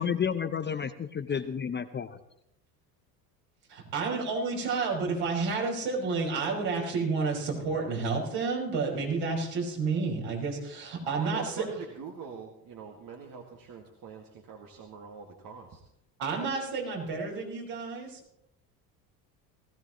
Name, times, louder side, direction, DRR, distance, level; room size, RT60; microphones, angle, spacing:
voice 1, 0.0-2.2, left 7 dB, 20° left, 9 dB, 0.7 m, -31 dB
voice 2, 3.7-11.7 16.2-18.2, right 4 dB, 60° right, -1 dB, 5.6 m, -30 dB
voice 3, 11.2-15.8, right 6 dB, 40° right, 1 dB, 2.1 m, -44 dB
19.0 x 15.5 x 3.1 m, 0.79 s
hypercardioid pair, 75°, 49 cm